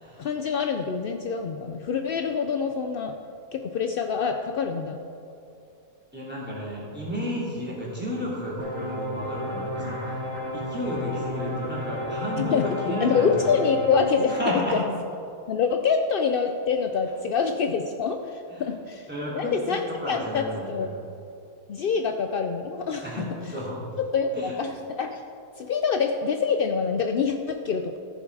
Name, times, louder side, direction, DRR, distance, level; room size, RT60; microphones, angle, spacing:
voice 1, 0.2-3.1 3.5-5.0 12.4-14.8 15.5-19.1 19.3-20.9 21.7-23.3 24.0-25.2 25.6-28.0, left 5 dB, 70° left, 5 dB, 0.5 m, -26 dB
voice 2, 6.1-10.2 10.5-13.7 14.3-14.8 18.5-18.6 19.1-20.9 23.0-23.3 23.5-23.8 24.3-24.5, equal, 5° right, -7 dB, 3.1 m, -32 dB
sound 1, 8.6-14.4, left 1 dB, 50° right, 2.7 m, -32 dB
14.5 x 7.3 x 4.8 m, 2.7 s
omnidirectional pair, 1.5 m